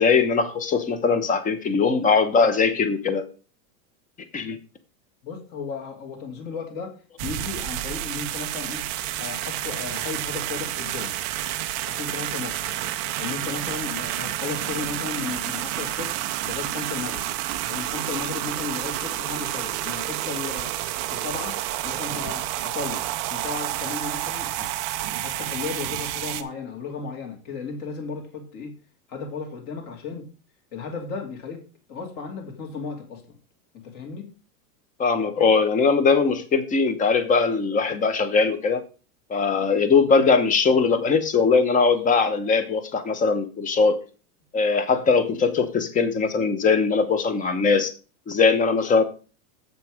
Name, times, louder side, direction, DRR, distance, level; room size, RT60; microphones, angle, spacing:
voice 1, 0.0-3.3 4.3-4.6 35.0-38.8 39.3-44.0 44.5-47.9 48.3-49.0, left 5 dB, 15° left, 11 dB, 0.9 m, -20 dB
voice 2, 5.2-8.9 9.2-11.1 11.9-12.6 13.2-16.1 16.5-17.3 17.7-20.8 21.1-21.6 21.8-23.0 23.3-24.8 25.2-28.7 29.1-30.3 30.7-31.6 31.9-33.2 33.7-34.3, left 5 dB, 40° left, 3 dB, 2.8 m, -34 dB
sound 1, 7.2-26.4, right 13 dB, 25° right, 0.3 m, -30 dB
7.8 x 6.6 x 4.9 m, 0.35 s
supercardioid pair, 150°, 45 cm